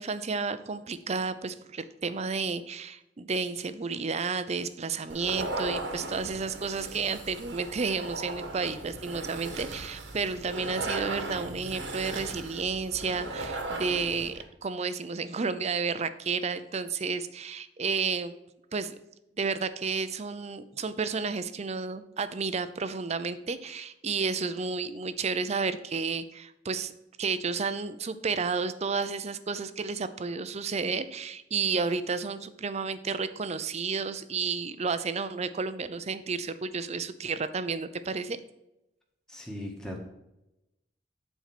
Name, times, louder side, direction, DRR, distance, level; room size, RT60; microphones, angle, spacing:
voice 1, 0.0-18.3 18.7-18.9 19.4-26.9 27.2-38.4, right 4 dB, 40° right, 12 dB, 0.5 m, -31 dB
sound 1, 5.1-14.4, right 2 dB, 85° right, 1.4 m, -37 dB
voice 2, 39.3-40.0, left 1 dB, 5° left, -2 dB, 1.6 m, -38 dB
8.2 x 4.6 x 6.0 m, 0.90 s
head